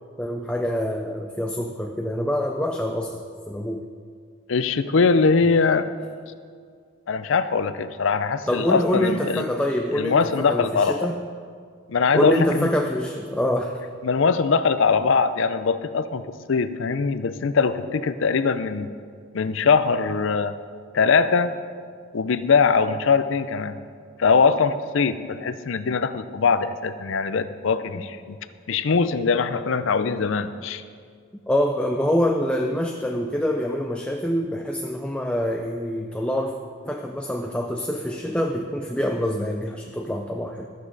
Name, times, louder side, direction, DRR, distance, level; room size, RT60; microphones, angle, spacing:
voice 1, 0.2-3.9 8.5-11.3 12.1-13.8 28.0-28.1 31.5-36.6 36.8-40.7, equal, 5° left, 3 dB, 0.4 m, -25 dB
voice 2, 4.5-5.9 7.1-9.5 9.9-11.1 11.9-12.7 14.0-18.9 19.3-20.5 20.9-21.5 22.1-23.8 24.2-28.4 28.7-30.8, left 5 dB, 60° left, 12 dB, 0.5 m, -21 dB
13.5 x 9.5 x 3.9 m, 2.1 s
head